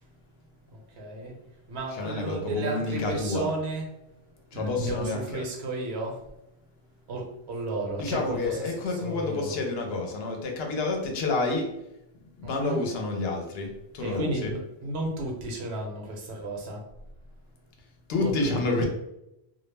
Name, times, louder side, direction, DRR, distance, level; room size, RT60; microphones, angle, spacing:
voice 1, 0.7-1.4 1.7-3.9 4.5-6.2 7.1-9.5 12.6-12.8 14.0-16.8 18.2-18.8, right 2 dB, 75° right, 0 dB, 0.9 m, -33 dB
voice 2, 1.9-3.5 4.5-5.4 8.0-11.7 12.4-14.5 18.1-18.8, left 3 dB, 70° left, 2 dB, 0.8 m, -29 dB
2.3 x 2.0 x 3.2 m, 0.86 s
omnidirectional pair, 1.1 m